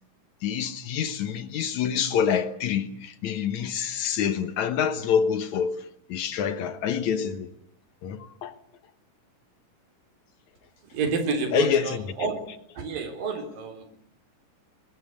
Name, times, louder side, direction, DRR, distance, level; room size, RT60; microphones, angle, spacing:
voice 1, 0.4-7.5 8.0-8.5 11.5-12.0, left 7 dB, 65° left, 2.3 m, -26 dB
voice 2, 10.9-12.4 12.8-13.9, right 4 dB, 90° right, 5.2 m, -29 dB
21.5 x 21.0 x 9.7 m
omnidirectional pair, 3.9 m